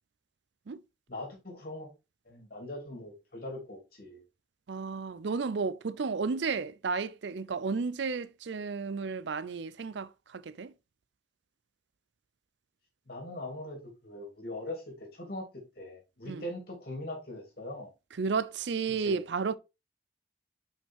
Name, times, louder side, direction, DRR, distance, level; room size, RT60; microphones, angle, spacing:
voice 1, 1.1-1.9 2.3-4.2 13.1-15.5 15.8-17.9 19.0-19.2, left 1 dB, 50° left, 2.8 m, -41 dB
voice 2, 4.7-10.7 16.2-16.4 18.2-19.6, right 5 dB, 70° right, 0.5 m, -33 dB
5.8 x 5.4 x 3.6 m
head